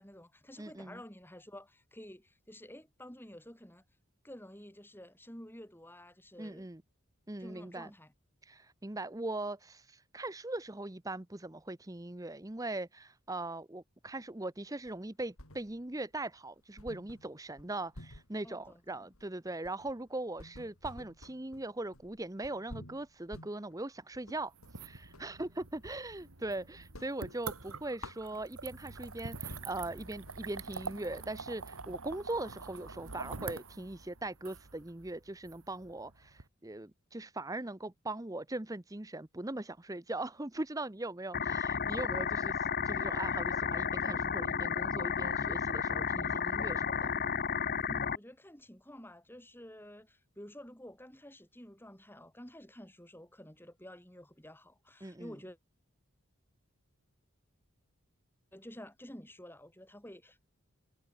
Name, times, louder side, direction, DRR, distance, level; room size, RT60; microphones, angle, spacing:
voice 1, 0.0-3.8 4.2-6.7 7.4-8.1 18.4-19.0 47.8-55.6 58.5-60.5, equal, 10° left, 6.0 m, -51 dB
voice 2, 0.6-1.0 6.4-6.8 7.3-7.9 8.4-24.5 24.8-47.1 55.0-55.3, right 2 dB, 15° right, 0.9 m, -40 dB
sound 1, 14.8-16.0 16.3-16.4 16.8-25.4 25.7-26.5 26.8-28.8 29.2-29.3 29.5-33.6, left 1 dB, 80° left, 6.7 m, -52 dB
sound 2, 24.5-36.4, right 4 dB, 90° right, 2.4 m, -45 dB
sound 3, 41.3-48.2, left 6 dB, 45° left, 0.8 m, -32 dB
head